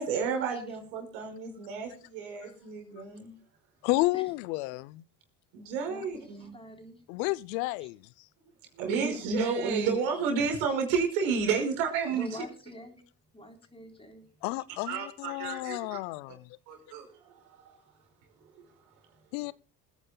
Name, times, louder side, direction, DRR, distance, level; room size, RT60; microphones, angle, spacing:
voice 1, 0.0-3.4 5.5-6.5 8.7-12.4 14.9-16.0 16.7-17.8 18.5-18.7, right 5 dB, 80° right, 5.4 m, -31 dB
voice 2, 3.8-5.0 7.1-8.0 14.4-16.5 19.3-19.5, left 20 dB, 80° left, 0.7 m, -31 dB
voice 3, 5.9-7.0 7.8-7.9 12.2-13.0 13.3-14.3, equal, 10° left, 3.7 m, -46 dB
26.5 x 9.9 x 2.2 m
hypercardioid pair, 75°, 50 cm